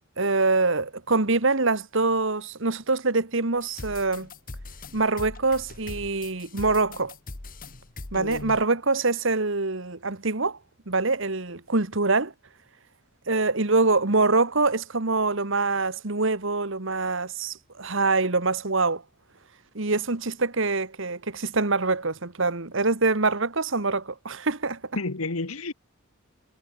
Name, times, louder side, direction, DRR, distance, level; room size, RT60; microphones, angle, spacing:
voice 1, 0.2-4.3 4.9-7.1 8.1-10.6 10.9-12.3 13.3-19.0 19.8-24.8, right 3 dB, 65° right, 1.7 m, -24 dB
sound 1, 3.6-8.6, left 2 dB, 40° left, 1.4 m, -41 dB
voice 2, 8.1-8.6 25.0-25.7, left 3 dB, 85° left, 1.6 m, -31 dB
head